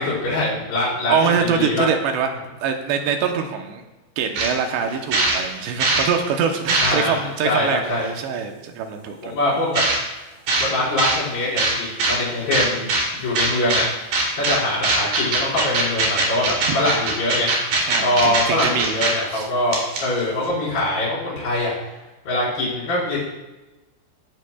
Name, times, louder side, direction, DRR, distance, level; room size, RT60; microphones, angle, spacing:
voice 1, 0.0-1.9 6.8-7.2 7.4-8.1 9.2-9.8 10.5-13.8 14.4-17.5 18.0-21.8 22.2-23.2, left 1 dB, 50° left, -10 dB, 6.0 m, -23 dB
voice 2, 1.1-2.3 2.6-3.8 4.2-9.4 16.7-16.9 17.8-19.0 19.3-19.5, right 6 dB, 75° right, 4 dB, 2.9 m, -24 dB
sound 1, 4.4-4.5 4.9-6.1 6.5-7.2 8.0-8.1 9.7-10.0 10.5-10.7 11.0-11.2 11.6-12.2 12.5-13.0 13.4-13.8 14.1-14.6 14.8-19.1 19.4-19.5 19.7-20.2, right 3 dB, 55° right, 4.2 m, -21 dB
17.5 x 10.0 x 2.3 m, 1.1 s
omnidirectional pair, 5.4 m